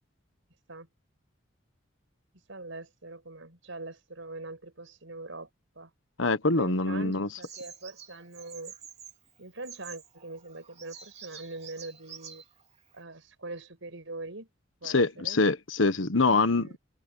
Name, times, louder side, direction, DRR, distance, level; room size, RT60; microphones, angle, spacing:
voice 1, 2.5-5.5 5.8-5.9 6.5-8.7 9.4-12.4 12.9-14.5 14.8-15.4 16.6-16.8, right 2 dB, 80° right, 5.6 m, -42 dB
voice 2, 6.2-7.3 14.8-16.8, left 3 dB, 75° left, 1.3 m, -25 dB
Bird vocalization bird call bird song, 7.4-13.0, right 7 dB, 35° right, 3.0 m, -49 dB
open air
head